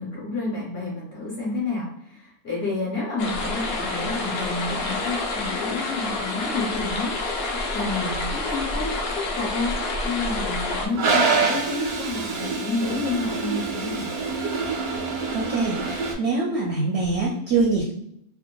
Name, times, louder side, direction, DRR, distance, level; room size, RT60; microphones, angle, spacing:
voice 1, 0.0-9.8 10.0-14.1, left 3 dB, 50° left, -4 dB, 0.9 m, -30 dB
sound 1, 3.2-10.9, left 2 dB, 80° left, 0.5 m, -28 dB
Toilet flush, 10.9-16.1, right 4 dB, 85° right, 1.1 m, -26 dB
voice 2, 15.3-17.9, right 3 dB, 70° right, -2 dB, 0.7 m, -24 dB
2.7 x 2.2 x 2.2 m, 0.74 s
omnidirectional pair, 1.5 m